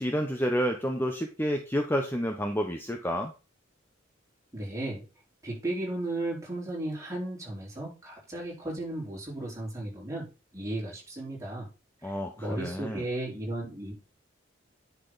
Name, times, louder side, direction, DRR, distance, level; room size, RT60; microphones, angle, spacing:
voice 1, 0.0-3.3 12.0-13.0, equal, 10° left, 4 dB, 0.8 m, -29 dB
voice 2, 4.5-5.1 5.4-10.3 10.5-11.7 12.0-13.9, right 1 dB, 15° right, -5 dB, 4.2 m, -35 dB
10.0 x 5.9 x 4.0 m, 0.32 s
head